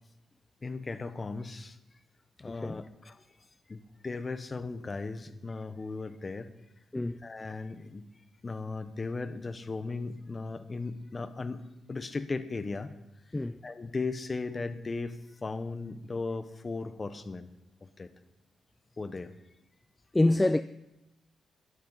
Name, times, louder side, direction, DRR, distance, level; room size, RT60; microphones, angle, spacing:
voice 1, 0.6-1.8 2.4-3.2 3.7-6.5 7.2-8.0 8.4-12.9 13.6-17.5 17.8-18.1 19.0-19.3, left 3 dB, 35° left, 0.9 m, -37 dB
voice 2, 2.5-2.8 6.9-7.2 13.3-13.6 20.1-20.6, left 2 dB, 15° left, 0.3 m, -26 dB
12.5 x 11.5 x 4.0 m
cardioid pair, 70°, 0 cm